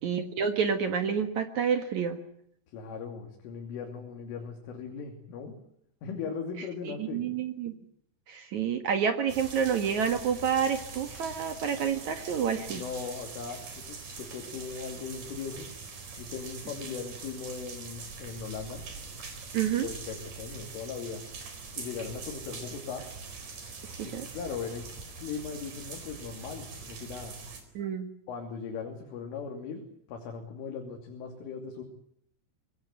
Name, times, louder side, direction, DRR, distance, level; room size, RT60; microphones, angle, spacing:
voice 1, 0.0-2.2 6.8-7.7 8.3-12.8 19.5-19.9 23.8-24.3 27.7-28.1, right 7 dB, 65° right, 8 dB, 1.9 m, -29 dB
voice 2, 2.7-5.6 6.0-7.2 12.6-15.7 16.2-18.8 19.8-21.2 21.8-23.1 24.0-24.9 25.2-27.4 28.3-31.8, left 6 dB, 75° left, 2 dB, 5.4 m, -39 dB
sound 1, 9.3-27.6, right 4 dB, 40° right, 5.4 m, -43 dB
24.5 x 19.5 x 9.5 m, 0.69 s
omnidirectional pair, 5.8 m